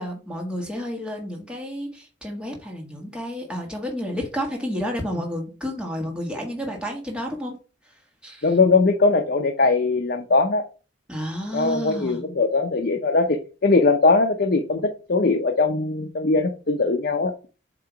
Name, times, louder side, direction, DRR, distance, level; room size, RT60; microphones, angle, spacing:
voice 1, 0.0-7.6 7.8-8.5 11.1-12.2, equal, 5° right, 0 dB, 1.4 m, -31 dB
voice 2, 8.4-10.6 11.5-17.3, left 3 dB, 55° left, 4 dB, 0.6 m, -20 dB
7.6 x 2.8 x 4.5 m, 0.34 s
head